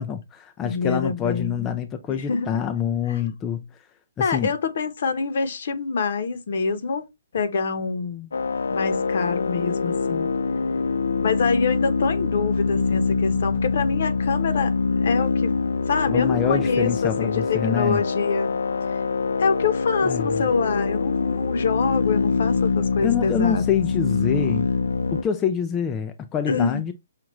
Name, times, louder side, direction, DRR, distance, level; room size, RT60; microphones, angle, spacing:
voice 1, 0.0-3.6 4.2-4.5 16.1-18.0 20.0-20.5 23.0-24.7 25.1-26.9, left 8 dB, 15° left, 0.3 m, -26 dB
voice 2, 0.6-1.8 2.1-2.5 3.1-3.2 4.2-7.0 7.3-8.3 8.7-10.3 11.2-14.7 15.0-15.5 15.9-18.6 19.4-23.8 26.5-26.8, left 5 dB, 55° left, 0.9 m, -26 dB
sound 1, 8.3-25.2, left 4 dB, 90° left, 0.4 m, -24 dB
5.8 x 2.5 x 3.0 m
hypercardioid pair, 165°, 0 cm